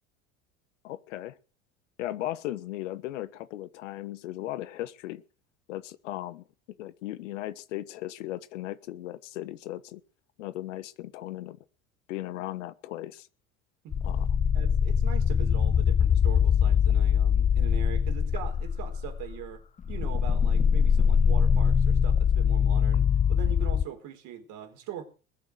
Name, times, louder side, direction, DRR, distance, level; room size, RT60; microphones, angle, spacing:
voice 1, 0.8-1.4 2.0-5.2 5.7-6.4 6.8-10.0 10.4-11.6 12.1-13.3 14.0-14.3, left 14 dB, 65° left, 1.3 m, -37 dB
sound 1, 13.9-19.5 19.8-23.8, left 7 dB, 20° left, 0.7 m, -23 dB
voice 2, 14.5-19.6 19.9-25.0, right 10 dB, 50° right, 4.6 m, -41 dB
21.0 x 7.4 x 8.1 m
figure-of-eight pair, 75°, 40 cm